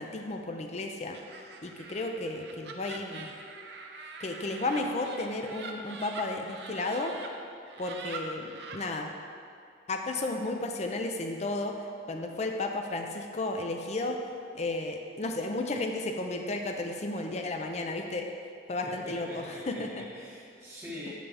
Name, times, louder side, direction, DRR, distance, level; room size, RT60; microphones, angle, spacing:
voice 1, 0.0-3.3 4.2-7.1 7.8-9.1 9.9-11.8 12.1-14.2 14.5-18.3 18.7-20.0, left 2 dB, 35° left, 4 dB, 0.5 m, -33 dB
Laughter, 1.1-7.3 7.7-8.9, right 4 dB, 60° right, 0.7 m, -44 dB
voice 2, 18.8-21.1, left 1 dB, 10° right, -8 dB, 0.9 m, -44 dB
9.0 x 7.0 x 3.4 m, 2.4 s
head